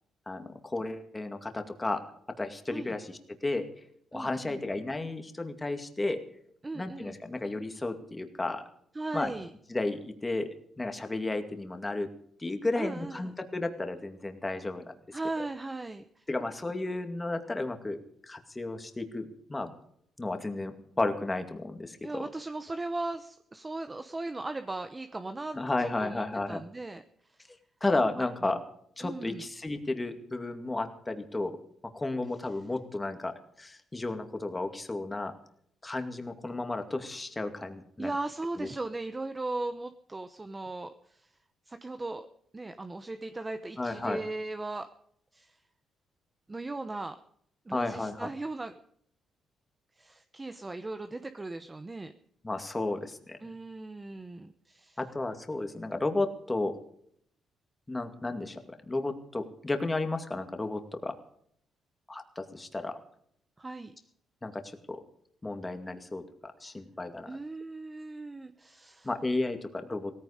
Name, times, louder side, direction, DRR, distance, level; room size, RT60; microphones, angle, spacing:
voice 1, 0.3-2.0 2.4-3.6 4.1-6.2 6.7-8.6 9.1-9.3 9.7-10.5 10.8-12.1 12.4-15.2 16.3-18.0 18.2-19.7 20.2-22.3 25.5-26.6 27.8-28.6 29.0-31.5 31.9-35.3 35.8-38.1 38.6-38.7 43.8-44.2 47.7-48.3 52.4-53.5 55.0-56.8 57.9-61.2 62.1-63.0 64.4-65.0 65.4-67.3 69.0-70.1, left 2 dB, 20° left, 7 dB, 2.3 m, -33 dB
voice 2, 4.1-4.6 6.6-7.2 8.9-9.5 12.8-13.3 15.1-16.3 22.0-27.0 27.4-27.5 28.2-28.6 29.0-29.5 38.0-41.3 41.7-42.3 42.5-44.9 45.3-45.6 46.5-47.2 47.7-48.7 50.0-52.1 53.4-55.0 63.6-63.9 67.3-69.1, right 2 dB, 20° right, 9 dB, 0.9 m, -38 dB
17.0 x 15.0 x 5.1 m, 0.67 s
cardioid pair, 90°, 0 cm